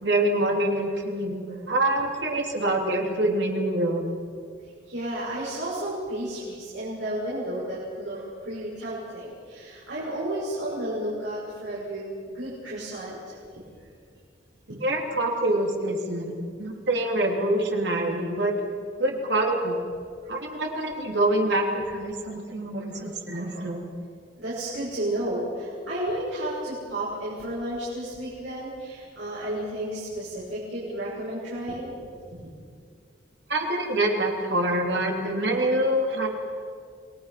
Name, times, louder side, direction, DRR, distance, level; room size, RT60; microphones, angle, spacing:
voice 1, 0.0-4.0 14.7-16.3 16.6-18.5 19.0-19.8 20.3-23.8 33.5-36.3, right 1 dB, 70° right, 1 dB, 3.3 m, -25 dB
voice 2, 0.6-0.9 1.5-1.6 4.9-13.6 20.2-20.3 22.9-23.0 23.3-23.7 24.4-31.9 32.3-32.5, right 1 dB, 85° right, -7 dB, 6.8 m, -32 dB
29.0 x 19.5 x 5.9 m, 2.1 s
head